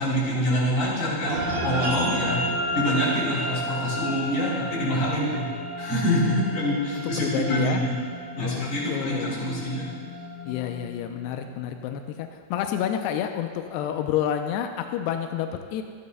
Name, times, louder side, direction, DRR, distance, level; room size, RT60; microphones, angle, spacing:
voice 1, 0.0-2.4 2.7-5.5 5.8-7.9 8.3-9.9, equal, 45° left, -6 dB, 4.4 m, -26 dB
sound 1, 1.2-11.9, equal, 70° right, 4.0 m, -32 dB
voice 2, 7.0-7.8 8.4-9.5 10.5-15.8, left 9 dB, 90° left, 5 dB, 2.3 m, -29 dB
27.0 x 9.6 x 2.2 m, 2.1 s
omnidirectional pair, 5.2 m